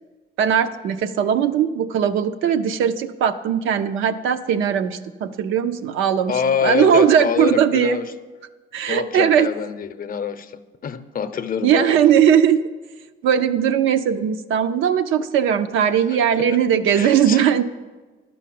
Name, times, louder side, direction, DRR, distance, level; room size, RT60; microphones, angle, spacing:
voice 1, 0.4-8.0 8.7-9.5 11.6-12.6 13.2-17.6, right 8 dB, 85° right, 0.6 m, -19 dB
voice 2, 6.3-8.1 8.9-12.0 16.5-16.6 16.9-17.4, left 6 dB, 45° left, 0.6 m, -25 dB
11.5 x 5.2 x 7.6 m
cardioid pair, 90°, 20 cm